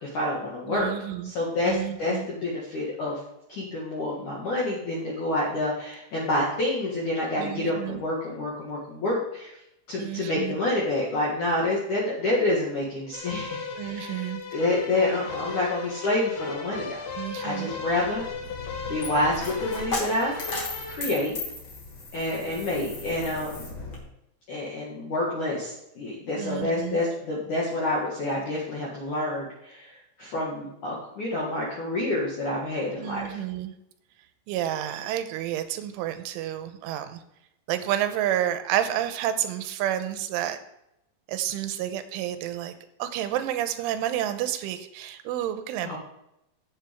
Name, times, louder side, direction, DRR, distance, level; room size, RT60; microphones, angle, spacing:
voice 1, 0.0-0.9 1.2-3.2 3.5-9.5 9.9-13.6 13.9-17.0 17.4-18.2 18.9-20.4 20.9-21.4 22.1-23.7 24.5-33.4 45.8-46.0, left 2 dB, 55° left, -5 dB, 2.4 m, -28 dB
voice 2, 0.7-1.3 1.7-2.3 7.4-8.0 10.0-10.6 13.7-14.4 17.2-17.7 26.3-27.0 33.0-33.7 34.5-37.2 37.7-40.6 41.3-42.7 43.0-46.0, right 11 dB, 85° right, 9 dB, 3.1 m, -30 dB
sound 1, 13.1-21.0, left 5 dB, 85° left, 1.7 m, -36 dB
Coin (dropping), 17.9-24.0, left 2 dB, 40° left, 1.9 m, -36 dB
15.5 x 7.4 x 3.5 m, 0.84 s
omnidirectional pair, 5.7 m